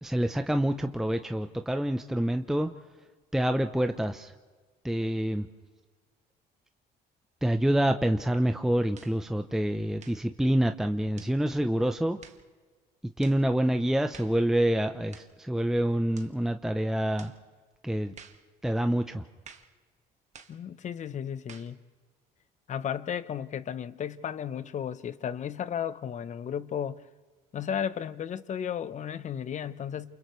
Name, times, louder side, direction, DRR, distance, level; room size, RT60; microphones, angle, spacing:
voice 1, 0.0-2.7 3.3-4.3 4.8-5.5 7.4-12.2 13.2-17.3 17.8-18.1 18.6-19.2, right 1 dB, ahead, 0.7 m, -27 dB
sound 1, 8.9-9.2 10.0-10.3 11.2-11.4 12.2-12.5 13.2-13.4 14.1-14.4 15.1-15.4 16.1-16.4 17.2-17.4 18.2-18.5 19.4-19.7 20.3-20.6 21.5-21.8, right 6 dB, 45° right, 1.6 m, -51 dB
voice 2, 20.5-21.8 22.7-27.1 27.5-30.2, left 8 dB, 45° left, 0.8 m, -34 dB
29.0 x 28.5 x 3.2 m
cardioid pair, 110°, 17 cm